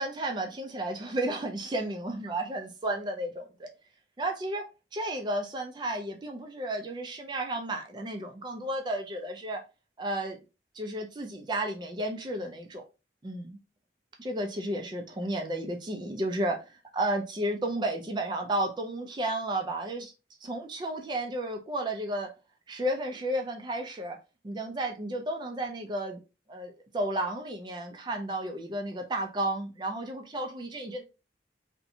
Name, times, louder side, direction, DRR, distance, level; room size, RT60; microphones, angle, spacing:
voice 1, 0.0-3.7 4.2-4.6 4.9-9.6 10.0-10.4 10.7-12.8 13.2-13.6 14.2-20.1 20.4-22.3 22.7-24.2 24.4-26.2 26.5-31.0, right 1 dB, 25° right, 0.4 m, -32 dB
2.6 x 2.1 x 2.7 m
head